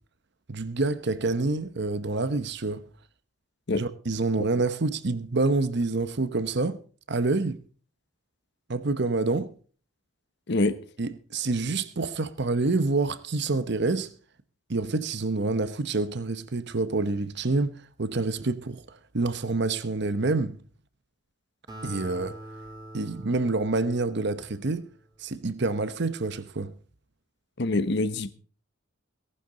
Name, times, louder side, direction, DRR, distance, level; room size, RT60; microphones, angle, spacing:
voice 1, 0.5-2.8 3.7-6.8 7.1-7.6 8.7-9.5 11.0-14.1 14.7-17.7 18.0-20.6 21.8-22.4 22.9-24.9 25.2-26.7, right 3 dB, 55° right, 0.9 m, -27 dB
Acoustic guitar, 21.7-25.3, right 1 dB, 20° right, 2.3 m, -44 dB
voice 2, 27.6-28.3, left 2 dB, 55° left, 1.0 m, -25 dB
18.0 x 11.0 x 3.9 m
head